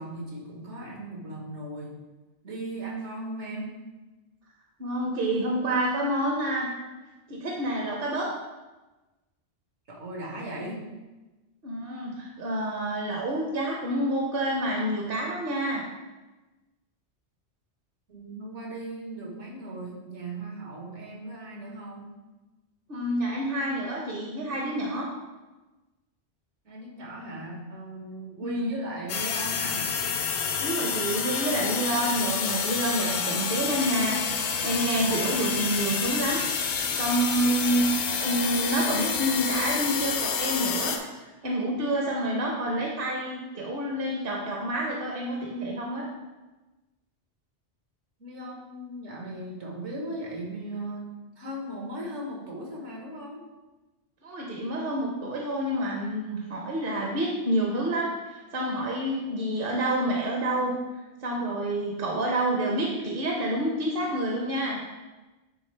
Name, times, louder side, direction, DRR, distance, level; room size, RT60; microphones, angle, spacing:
voice 1, 0.0-2.0 2.4-3.8 9.9-10.8 18.1-22.1 26.6-29.9 48.2-53.5, right 1 dB, 75° right, -2 dB, 1.6 m, -37 dB
voice 2, 4.8-6.7 7.3-8.3 11.6-15.9 22.9-25.1 28.4-28.7 30.6-46.1 54.2-60.8 61.2-64.8, right 1 dB, 55° right, -1 dB, 1.0 m, -28 dB
sound 1, 29.1-41.0, left 6 dB, 70° left, 0.9 m, -28 dB
9.3 x 3.6 x 3.3 m, 1.1 s
omnidirectional pair, 1.2 m